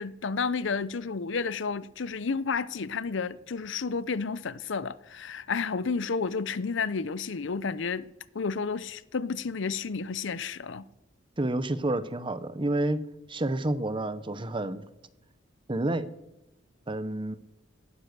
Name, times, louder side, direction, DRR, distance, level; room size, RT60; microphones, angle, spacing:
voice 1, 0.0-8.1 8.3-10.9, left 5 dB, 65° left, 0.6 m, -31 dB
voice 2, 11.4-13.0 13.3-14.8 15.7-16.1 16.9-17.4, right 1 dB, 25° right, 0.8 m, -29 dB
18.5 x 9.9 x 6.7 m
head